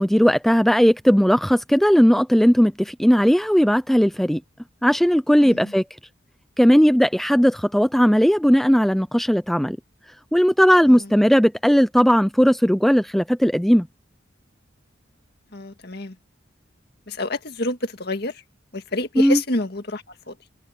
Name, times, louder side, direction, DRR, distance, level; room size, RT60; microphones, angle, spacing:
voice 1, 0.0-4.4 4.8-5.8 6.6-9.8 10.3-13.9 19.2-19.4, equal, ahead, 0.4 m, -17 dB
voice 2, 15.5-16.2 17.1-18.4 18.7-20.4, left 2 dB, 55° left, 2.0 m, -28 dB
head